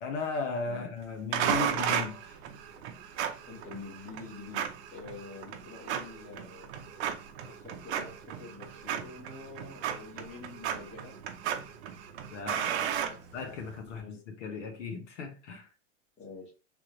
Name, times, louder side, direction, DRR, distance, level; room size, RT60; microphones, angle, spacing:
voice 1, 0.0-2.3 12.3-13.0 13.3-15.7, left 4 dB, 75° left, 1.2 m, -37 dB
sound 1, 1.3-13.8, right 9 dB, 65° right, 0.7 m, -35 dB
voice 2, 3.5-6.7 7.4-11.2 13.0-13.2 13.9-14.1 16.2-16.5, left 3 dB, 20° left, 1.3 m, -47 dB
3.6 x 3.2 x 3.1 m
supercardioid pair, 170°, 37 cm